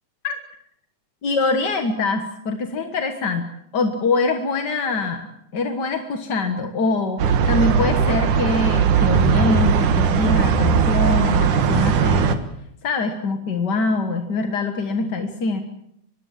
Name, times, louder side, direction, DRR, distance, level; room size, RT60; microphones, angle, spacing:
voice 1, 1.2-5.3 5.5-12.4 12.8-15.6, left 3 dB, 45° left, 6 dB, 1.6 m, -24 dB
sound 1, 7.2-12.3, right 6 dB, 75° right, 3.0 m, -18 dB
24.0 x 21.0 x 7.5 m, 0.74 s
omnidirectional pair, 3.6 m